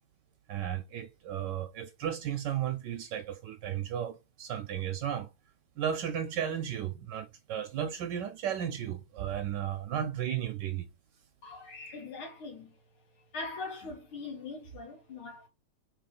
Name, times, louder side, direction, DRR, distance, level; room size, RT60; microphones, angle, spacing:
voice 1, 0.5-5.3 5.8-10.9, right 9 dB, 70° right, 1.1 m, -34 dB
voice 2, 11.4-12.8 13.2-15.5, left 3 dB, 90° left, 2.8 m, -42 dB
4.5 x 2.9 x 4.1 m
omnidirectional pair, 2.2 m